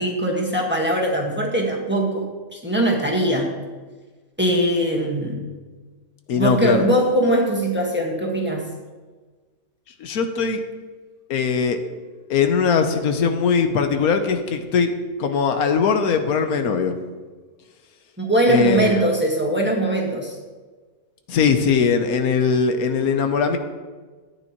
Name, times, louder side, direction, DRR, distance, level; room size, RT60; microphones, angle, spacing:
voice 1, 0.0-2.2 2.5-3.6 4.4-5.5 6.3-8.7 18.2-20.3, right 1 dB, 10° right, -2 dB, 1.4 m, -21 dB
voice 2, 6.3-6.9 10.0-10.6 11.3-11.8 12.3-14.9 15.2-16.9 18.5-19.1 21.3-23.6, left 6 dB, 85° left, 7 dB, 1.3 m, -20 dB
13.5 x 9.2 x 3.0 m, 1.4 s
omnidirectional pair, 1.5 m